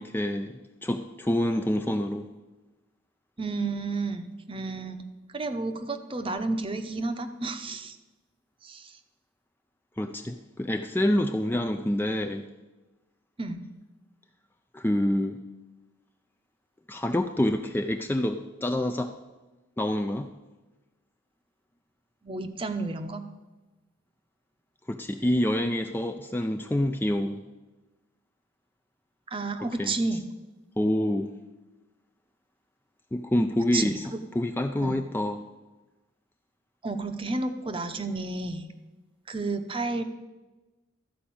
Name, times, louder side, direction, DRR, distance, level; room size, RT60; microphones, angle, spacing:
voice 1, 0.0-2.3 10.0-12.4 14.7-15.4 16.9-19.1 19.8-20.3 24.9-27.4 29.6-30.2 30.8-31.3 33.1-35.4, left 1 dB, 10° left, 6 dB, 0.3 m, -27 dB
voice 2, 3.4-5.1 5.3-8.0 8.6-8.9 13.4-13.7 22.2-23.2 29.3-30.2 33.7-34.2 34.8-35.0 36.8-38.7 39.3-40.0, right 3 dB, 25° right, 8 dB, 0.7 m, -31 dB
13.0 x 5.1 x 8.5 m, 1.2 s
head